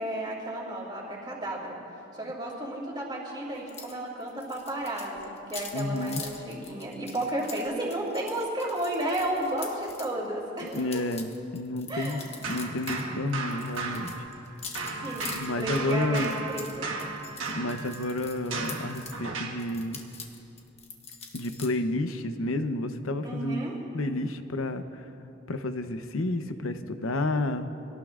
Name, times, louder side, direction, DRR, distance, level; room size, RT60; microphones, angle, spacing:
voice 1, 0.0-1.7 2.1-10.8 11.9-12.3 15.0-17.0 23.2-23.8, right 1 dB, 20° right, -3 dB, 2.8 m, -33 dB
sound 1, 3.7-3.9 4.2-10.1 10.6-13.0 13.3-19.2 19.6-21.7, left 5 dB, 30° left, 1.2 m, -44 dB
voice 2, 5.7-6.2 10.6-14.1 15.3-16.4 17.5-20.0 21.3-23.6 23.9-25.1 25.5-27.7, left 2 dB, 80° left, 8 dB, 0.8 m, -30 dB
sound 2, 12.4-14.5 14.7-19.7, right 3 dB, 70° right, 1.4 m, -35 dB
25.0 x 18.0 x 2.5 m, 2.9 s
head